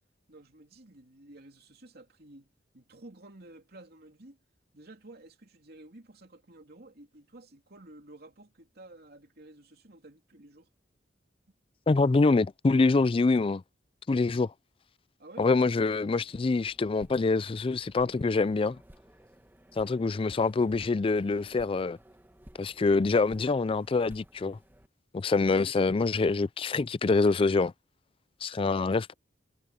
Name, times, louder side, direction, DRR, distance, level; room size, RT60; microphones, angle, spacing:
voice 1, 0.3-4.4 4.7-10.7 15.2-15.5, right 2 dB, 60° right, 3.0 m, -52 dB
voice 2, 11.9-13.6 14.1-14.5 15.4-18.8 19.8-22.0 22.6-24.6 25.1-27.7 28.4-29.1, left 3 dB, 30° left, 0.4 m, -25 dB
sound 1, 16.1-24.9, equal, 10° right, 1.5 m, -56 dB
head